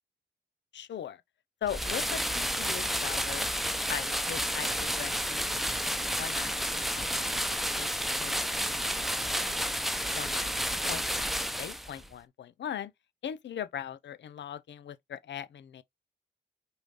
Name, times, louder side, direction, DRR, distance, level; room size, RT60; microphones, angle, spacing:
voice 1, 0.7-1.2 1.6-3.5 3.9-5.7 6.2-7.3 7.8-7.9 8.2-8.4 8.7-9.8 10.1-11.3 11.6-12.9 13.2-15.8, left 9 dB, 70° left, 0.6 m, -40 dB
sound 1, 1.6-12.1, equal, ahead, 0.8 m, -31 dB
4.8 x 2.6 x 3.1 m
supercardioid pair, 40°, 20 cm